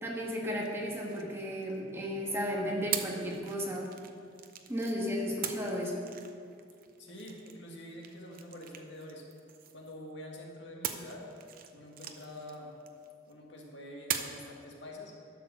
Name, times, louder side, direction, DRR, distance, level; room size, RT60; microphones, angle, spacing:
voice 1, 0.0-3.9 4.7-6.0, equal, 15° right, -2 dB, 1.3 m, -34 dB
sound 1, 0.6-2.0 2.9-5.0 5.4-10.1 10.8-13.3 14.1-14.5, right 9 dB, 50° right, 0.7 m, -42 dB
voice 2, 7.0-9.2 9.7-11.3 11.7-12.7 13.3-15.1, left 1 dB, 65° left, -1 dB, 1.8 m, -46 dB
12.0 x 6.7 x 6.1 m, 2.4 s
head